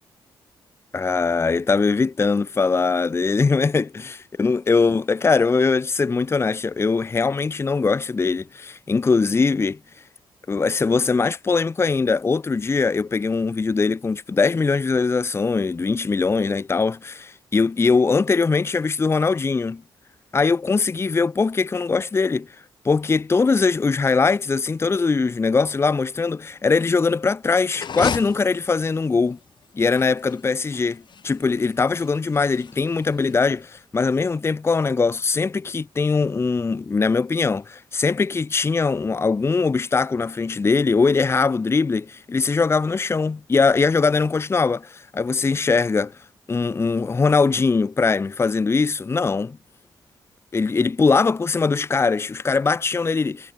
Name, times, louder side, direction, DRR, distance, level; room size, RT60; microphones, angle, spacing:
voice 1, 0.9-9.8 10.5-19.8 20.3-22.6 22.8-29.4 29.7-46.2 46.5-49.6 50.5-53.5, left 4 dB, 30° left, 0.7 m, -21 dB
sound 1, 27.7-33.8, left 7 dB, 55° left, 4.3 m, -35 dB
cardioid pair, 95°, 9 cm